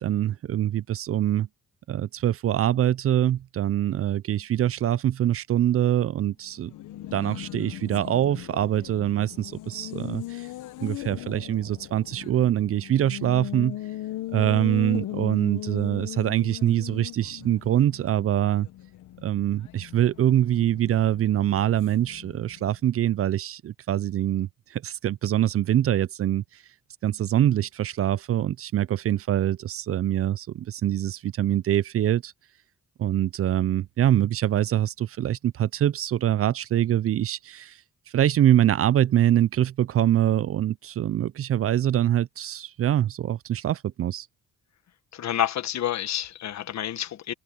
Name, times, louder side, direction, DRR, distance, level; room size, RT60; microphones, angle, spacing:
voice 1, 0.0-1.5 1.9-6.7 7.1-10.5 10.8-13.8 14.3-18.7 19.2-26.4 27.0-32.3 33.0-37.8 38.1-44.3, right 11 dB, 50° right, 0.5 m, -24 dB
Race car auto racing, 6.5-22.8, left 14 dB, 85° left, 1.1 m, -38 dB
voice 2, 45.1-47.3, left 11 dB, 65° left, 1.5 m, -29 dB
cardioid pair, 90°, 30 cm